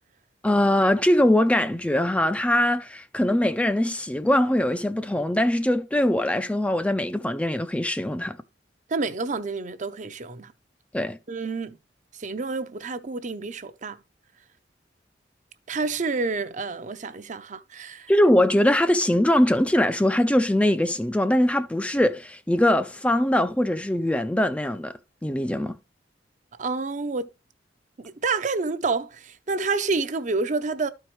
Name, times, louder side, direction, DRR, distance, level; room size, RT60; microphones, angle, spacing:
voice 1, 0.4-8.4 10.9-11.2 18.1-24.9 25.2-25.7, left 1 dB, 5° left, 0.4 m, -22 dB
voice 2, 8.9-10.5 11.3-11.8 12.2-14.0 15.7-18.1 26.6-27.3 28.0-30.9, right 4 dB, 45° right, 0.6 m, -28 dB
12.5 x 4.6 x 3.1 m
head